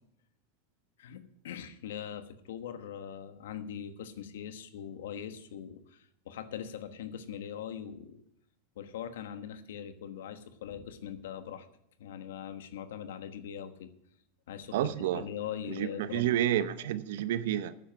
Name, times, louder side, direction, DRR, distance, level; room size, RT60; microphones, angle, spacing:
voice 1, 1.0-8.2 8.8-11.7 12.0-13.9 14.5-14.8 15.1-16.3, left 9 dB, 85° left, 10 dB, 1.2 m, -41 dB
voice 2, 14.7-15.2 15.7-17.7, right 11 dB, 75° right, 14 dB, 0.8 m, -30 dB
9.6 x 7.8 x 9.2 m, 0.76 s
supercardioid pair, 135°, 0 cm